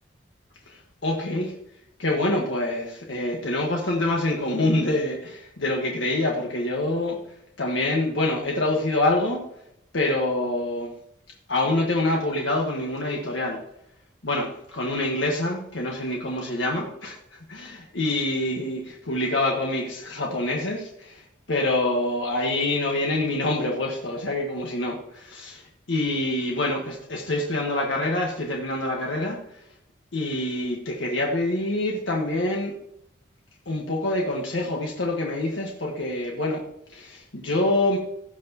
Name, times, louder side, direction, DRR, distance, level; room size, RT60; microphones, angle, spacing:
voice 1, 0.7-1.5 2.0-7.2 7.6-9.4 9.9-10.9 11.5-13.6 14.2-17.2 17.5-29.4 30.1-32.7 33.6-36.6 36.9-38.0, left 1 dB, 85° left, -1 dB, 1.5 m, -26 dB
16.5 x 6.1 x 2.9 m, 0.77 s
head